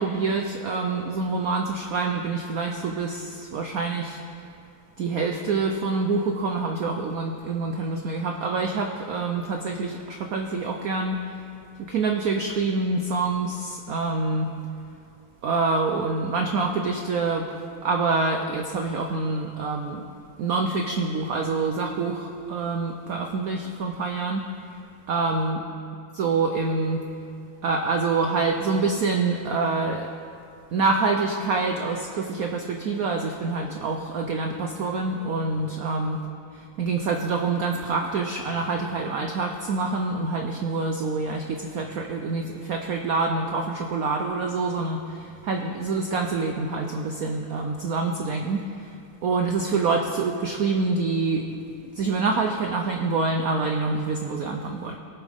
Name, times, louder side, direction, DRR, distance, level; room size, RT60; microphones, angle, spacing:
voice 1, 0.0-4.2 5.0-11.5 11.8-14.5 15.4-17.5 17.8-20.1 20.4-25.6 26.2-27.1 27.6-30.1 30.7-36.2 36.8-49.0 49.2-51.5 51.8-55.0, right 3 dB, 90° right, 3 dB, 0.7 m, -26 dB
21.5 x 7.4 x 3.5 m, 2.5 s
omnidirectional pair, 2.4 m